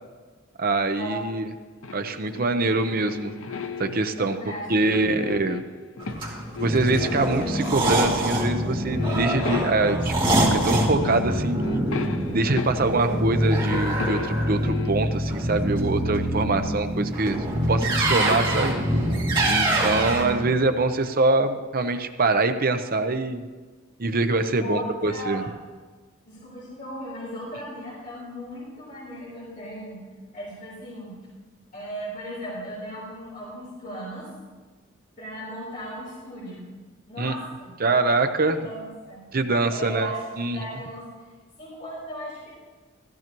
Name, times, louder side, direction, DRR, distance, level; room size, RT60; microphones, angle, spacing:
voice 1, 0.6-1.5 1.9-3.3 3.8-4.4 4.7-5.6 6.6-10.1 10.5-11.9 12.3-17.4 17.7-18.7 19.4-23.4 24.0-25.4 37.2-37.3 37.8-38.6 39.3-40.1 40.4-40.6, right 3 dB, 45° right, 8 dB, 0.7 m, -24 dB
sound 1, 1.8-4.2 4.7-6.3 6.6-8.0 8.4-8.6 8.9-10.1 10.7-10.8 11.0-13.1 13.4-15.0, left 5 dB, 85° left, 0.7 m, -35 dB
voice 2, 4.3-4.7 19.6-20.0 24.6-25.5 26.3-30.0 30.3-31.2 31.7-34.3 35.2-36.6 37.1-38.0 38.5-39.2 39.7-41.1 41.6-42.5, equal, 40° left, -8 dB, 4.0 m, -37 dB
sound 2, 6.0-20.4, right 1 dB, 25° right, 2.4 m, -25 dB
15.0 x 14.5 x 3.0 m, 1.4 s
head